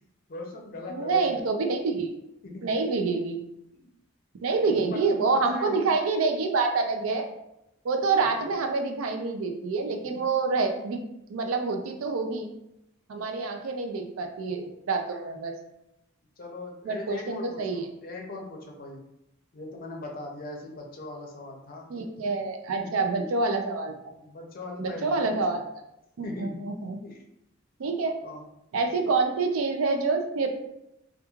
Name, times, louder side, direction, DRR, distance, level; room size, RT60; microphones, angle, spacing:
voice 1, 0.3-1.5 2.4-2.7 3.7-3.9 4.9-5.0 5.3-6.0 8.2-8.5 10.1-10.2 16.4-19.0 19.5-21.9 22.8-23.3 24.1-25.6 26.2-26.7 27.0-27.2 28.2-28.4, left 2 dB, 45° left, 1 dB, 0.5 m, -40 dB
voice 2, 0.9-2.1 2.6-3.4 4.4-7.3 7.8-11.0 11.3-12.5 13.1-15.5 16.8-17.8 21.9-24.0 24.8-25.6 26.2-27.0 27.8-28.2 28.7-30.5, right 4 dB, 85° right, 5 dB, 0.4 m, -27 dB
2.9 x 2.3 x 2.3 m, 0.85 s
head